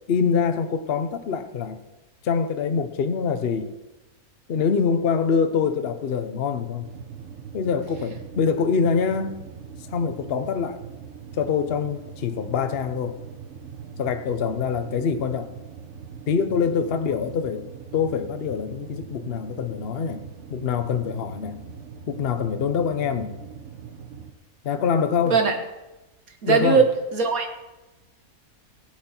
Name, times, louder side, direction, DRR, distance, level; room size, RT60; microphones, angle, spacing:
voice 1, 0.1-1.8 2.2-3.7 4.5-6.9 7.5-9.4 9.9-10.8 11.4-13.2 14.0-15.5 16.3-17.7 17.9-21.6 22.1-23.4 24.6-25.4 26.5-26.8, left 6 dB, 50° left, 8 dB, 0.9 m, -25 dB
sound 1, 6.8-24.3, right 6 dB, 55° right, 1.2 m, -41 dB
voice 2, 25.3-25.6 26.4-27.6, right 5 dB, 75° right, 4 dB, 1.9 m, -20 dB
16.5 x 7.9 x 4.4 m, 1.0 s
omnidirectional pair, 1.5 m